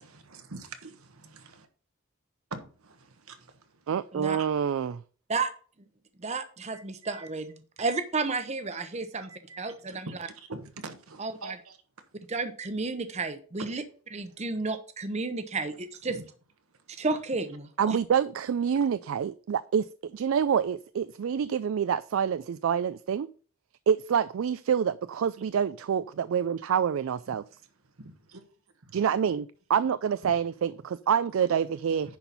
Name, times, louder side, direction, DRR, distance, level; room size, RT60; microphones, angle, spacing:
voice 1, 0.0-1.5 2.5-3.5 4.4-4.5 6.7-7.3 7.8-8.0 8.7-8.8 9.1-11.8 13.6-13.7 16.1-16.2 28.0-28.4 28.9-29.0 30.2-30.3, right 3 dB, 85° right, 8 dB, 1.3 m, -44 dB
voice 2, 3.9-5.0 17.8-23.3 23.9-27.4 28.9-32.2, right 7 dB, 70° right, 15 dB, 0.3 m, -27 dB
voice 3, 6.2-9.3 9.6-10.1 11.2-11.6 12.3-13.8 14.1-16.2 17.0-18.0, right 3 dB, 30° right, 9 dB, 0.8 m, -32 dB
10.0 x 4.4 x 5.3 m, 0.41 s
head